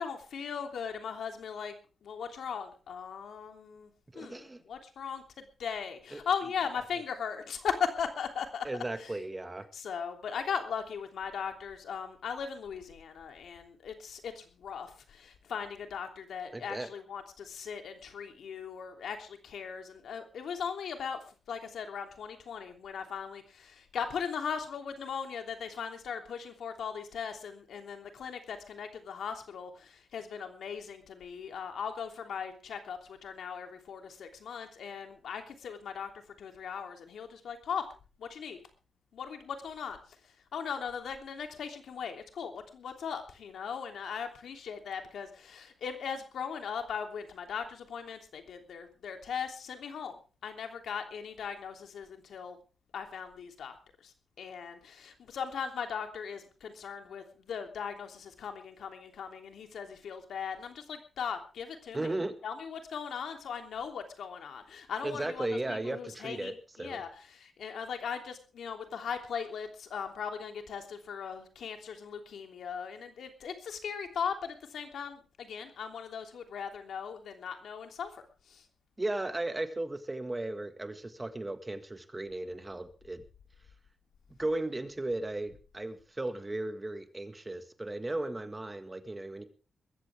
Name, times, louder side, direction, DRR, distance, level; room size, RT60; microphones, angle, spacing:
voice 1, 0.0-1.7 2.0-8.7 9.0-9.1 9.7-36.1 36.4-37.9 38.2-38.6 39.1-40.0 40.2-52.6 52.9-62.1 62.4-78.1 78.5-78.6, left 7 dB, 80° left, 5 dB, 3.1 m, -38 dB
voice 2, 4.1-4.6 6.1-6.2 8.6-9.7 16.5-16.9 61.9-62.3 65.0-67.0 79.0-83.2 84.4-89.5, right 2 dB, 20° right, 9 dB, 1.8 m, -36 dB
21.5 x 14.5 x 3.6 m, 0.35 s
cardioid pair, 105°, 0 cm